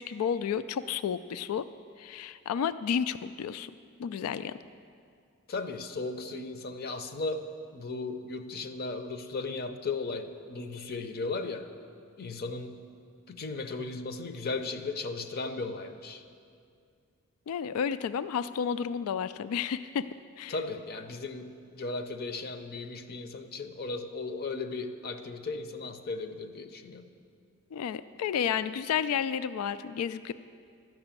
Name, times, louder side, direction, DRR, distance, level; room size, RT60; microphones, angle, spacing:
voice 1, 0.0-1.7 2.0-3.7 4.0-4.5 17.5-20.1 20.4-20.6 27.7-30.3, left 7 dB, 80° left, 15 dB, 0.3 m, -31 dB
voice 2, 5.5-7.5 7.7-11.7 12.2-12.8 13.3-16.2 20.5-27.1, left 3 dB, 45° left, 8 dB, 0.6 m, -36 dB
12.5 x 6.0 x 8.8 m, 2.3 s
head